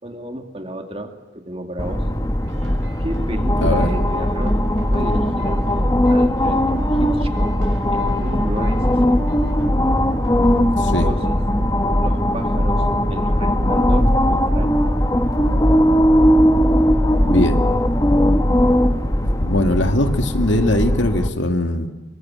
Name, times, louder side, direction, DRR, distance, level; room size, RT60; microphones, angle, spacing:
voice 1, 0.0-2.1 3.0-4.6 4.9-6.6 7.0-7.6 7.9-9.3 10.9-11.4 12.0-12.8 13.1-14.7 15.0-15.2, right 1 dB, 30° right, 5 dB, 2.5 m, -32 dB
sound 1, 1.8-21.3, equal, 20° left, 1.3 m, -18 dB
sound 2, 2.4-10.7, right 1 dB, 75° right, 6.4 m, -44 dB
voice 2, 10.7-11.1 17.2-17.7 19.2-21.9, left 1 dB, 75° left, 6 dB, 2.3 m, -20 dB
25.5 x 23.5 x 8.8 m, 1.0 s
head